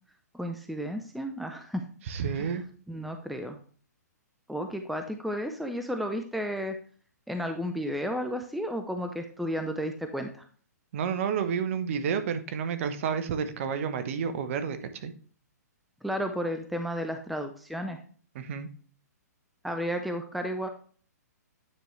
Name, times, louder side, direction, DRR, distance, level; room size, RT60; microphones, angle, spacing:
voice 1, 0.3-1.8 2.3-2.6 2.9-3.6 4.5-6.7 7.3-10.4 16.0-18.0 19.6-20.7, equal, ahead, 6 dB, 0.5 m, -33 dB
voice 2, 2.1-2.6 10.9-15.1 18.3-18.7, right 7 dB, 50° right, 10 dB, 0.9 m, -30 dB
9.2 x 4.6 x 3.1 m, 0.43 s
hypercardioid pair, 130°, 9 cm